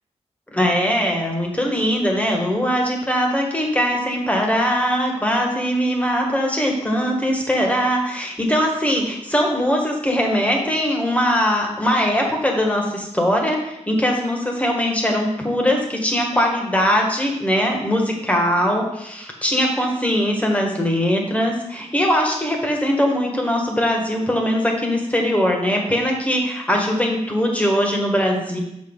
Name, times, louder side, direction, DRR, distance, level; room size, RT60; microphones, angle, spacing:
voice 1, 0.5-28.6, equal, 10° left, 0 dB, 1.4 m, -21 dB
6.2 x 6.1 x 3.7 m, 0.85 s
wide cardioid pair, 95°, 12 cm